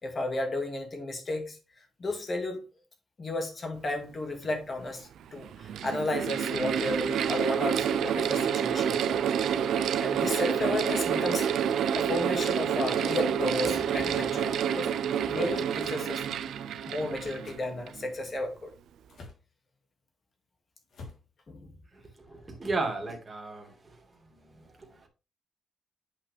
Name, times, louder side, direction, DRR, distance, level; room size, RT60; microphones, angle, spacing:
voice 1, 0.0-2.7 3.2-9.2 10.0-14.9 15.2-16.2 16.9-18.7 21.5-21.7, left 2 dB, 30° left, 2.2 m, -33 dB
Mechanical fan, 4.4-4.5 5.4-18.0, right 8 dB, 80° right, 0.6 m, -28 dB
sound 1, 15.8-16.0 17.4-17.6 19.1-19.4 20.9-21.3, left 3 dB, 60° left, 3.3 m, -47 dB
voice 2, 22.3-24.0 24.6-25.1, right 3 dB, 20° right, 2.3 m, -34 dB
8.6 x 5.6 x 3.4 m
wide cardioid pair, 150°, 0 cm